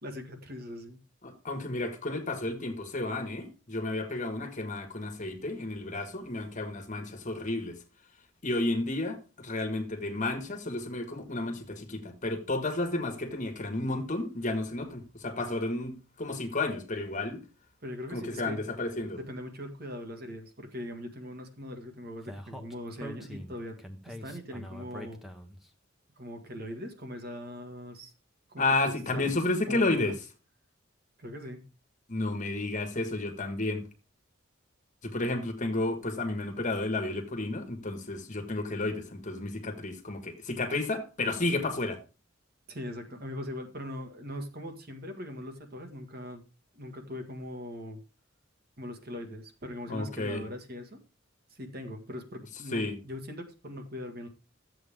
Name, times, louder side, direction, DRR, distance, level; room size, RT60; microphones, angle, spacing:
voice 1, 0.0-1.0 17.8-18.6 19.1-23.8 24.1-25.2 26.2-28.1 28.5-29.3 29.7-30.1 31.2-31.6 42.7-46.4 46.7-48.0 48.8-51.0 51.5-54.3, left 1 dB, 50° right, 1.9 m, -41 dB
voice 2, 1.2-7.8 8.4-17.4 18.1-19.2 28.6-30.1 32.1-33.8 35.0-42.0 49.9-50.4 52.7-53.0, left 2 dB, 40° left, 1.7 m, -32 dB
Speech, 22.2-25.6, equal, ahead, 1.2 m, -43 dB
13.5 x 7.9 x 3.7 m
head